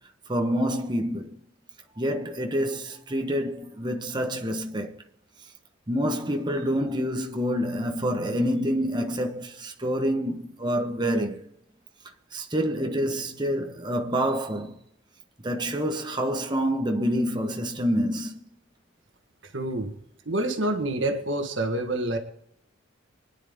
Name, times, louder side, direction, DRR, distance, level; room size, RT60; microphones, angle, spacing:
voice 1, 0.3-1.3 2.0-5.0 5.9-11.4 12.3-14.8 15.4-18.4, equal, 20° right, 1.2 m, -27 dB
voice 2, 19.5-19.9 20.3-22.2, right 1 dB, 60° right, 1.6 m, -27 dB
24.5 x 10.0 x 3.7 m
head